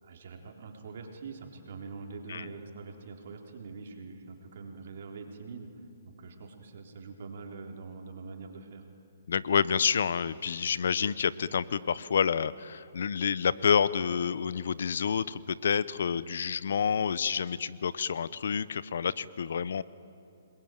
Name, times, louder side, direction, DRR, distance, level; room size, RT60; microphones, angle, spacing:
voice 1, 0.0-5.7 6.0-8.8, right 4 dB, 60° right, 2 dB, 3.7 m, -44 dB
voice 2, 9.3-19.8, left 7 dB, 70° left, 18 dB, 0.8 m, -28 dB
26.5 x 21.0 x 9.2 m, 2.7 s
hypercardioid pair, 145°, 0 cm